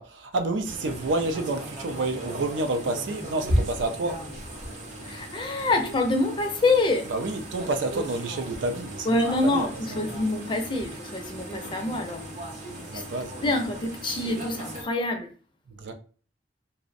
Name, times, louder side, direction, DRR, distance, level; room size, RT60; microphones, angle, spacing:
voice 1, 0.0-4.2 7.1-10.1 12.9-13.5 15.7-15.9, right 2 dB, 80° right, 0.4 m, -29 dB
sound 1, 0.6-14.8, equal, 40° right, 0.6 m, -36 dB
voice 2, 5.0-7.1 9.1-12.2 12.9-13.0 13.4-15.3, left 2 dB, 25° left, 0.4 m, -26 dB
2.5 x 2.0 x 2.5 m
head